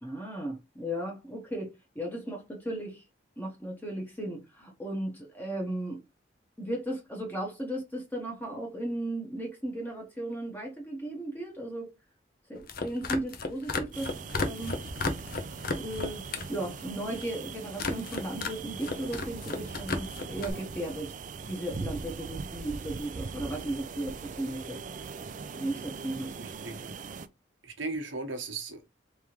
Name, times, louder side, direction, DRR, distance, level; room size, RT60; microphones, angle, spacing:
voice 1, 0.0-3.0 3.4-6.0 6.6-11.9 12.5-14.7 15.8-21.1 21.4-24.8 25.5-26.3, right 1 dB, 10° left, 1.0 m, -36 dB
sound 1, 12.6-16.5 16.8-17.3 17.7-18.5 18.8-20.5, left 3 dB, 50° left, 0.7 m, -33 dB
sound 2, 13.9-27.3, right 5 dB, 45° right, 0.4 m, -41 dB
voice 2, 26.4-27.0 27.6-28.8, right 3 dB, 85° right, 1.0 m, -37 dB
3.5 x 3.4 x 2.9 m
head